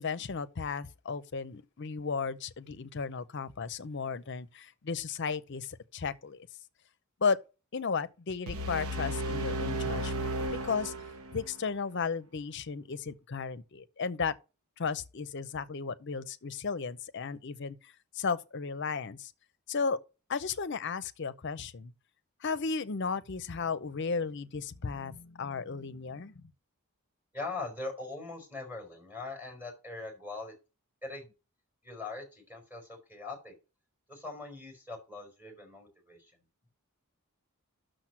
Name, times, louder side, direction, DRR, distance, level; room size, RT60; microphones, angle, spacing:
voice 1, 0.0-6.5 7.2-7.4 7.7-10.3 10.6-10.9 11.3-14.3 14.8-19.3 19.7-20.0 20.3-21.9 22.4-26.4, left 5 dB, 55° left, 0.6 m, -34 dB
sound 1, 8.5-11.5, right 1 dB, 75° right, 0.9 m, -34 dB
voice 2, 27.3-30.5 31.0-31.3 31.8-33.5 34.1-36.3, left 3 dB, 10° right, 4.5 m, -41 dB
6.5 x 6.0 x 6.0 m
head